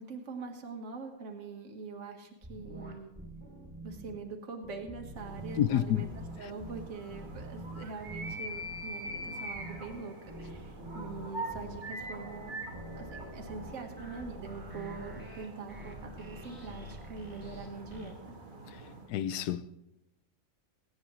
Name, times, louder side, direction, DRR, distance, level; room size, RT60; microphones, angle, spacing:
voice 1, 0.0-3.1 3.8-12.5 12.9-18.4, right 4 dB, 50° right, 1.8 m, -43 dB
sound 1, 2.4-4.2 4.6-18.1, right 1 dB, 10° right, 2.7 m, -46 dB
sound 2, 5.2-19.1, right 1 dB, 35° right, 1.3 m, -44 dB
voice 2, 5.6-6.0 18.7-19.8, left 11 dB, 75° left, 1.1 m, -30 dB
23.5 x 9.5 x 3.2 m
omnidirectional pair, 1.7 m